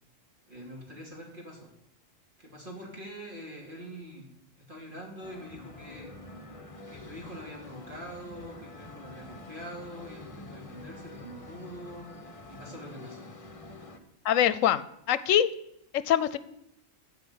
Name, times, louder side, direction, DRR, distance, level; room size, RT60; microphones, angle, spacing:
voice 1, 0.5-1.7 2.4-4.3 4.6-6.6 6.9-12.1 12.5-13.3, equal, 40° right, -1 dB, 3.2 m, -44 dB
sound 1, 5.2-14.0, left 2 dB, 30° left, 1.1 m, -46 dB
voice 2, 14.2-15.5 15.9-16.4, left 10 dB, 85° left, 16 dB, 1.0 m, -24 dB
13.5 x 4.9 x 8.7 m, 0.78 s
omnidirectional pair, 1.3 m